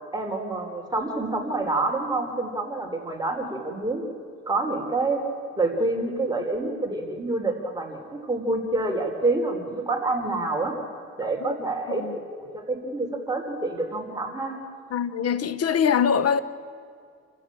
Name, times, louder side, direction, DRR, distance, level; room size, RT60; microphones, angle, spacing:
voice 1, 0.1-4.0 4.5-10.7 11.2-14.6, right 2 dB, 15° right, 3.9 m, -27 dB
voice 2, 14.9-16.4, left 7 dB, 55° left, 1.1 m, -23 dB
28.5 x 15.0 x 8.8 m
cardioid pair, 90°, 30 cm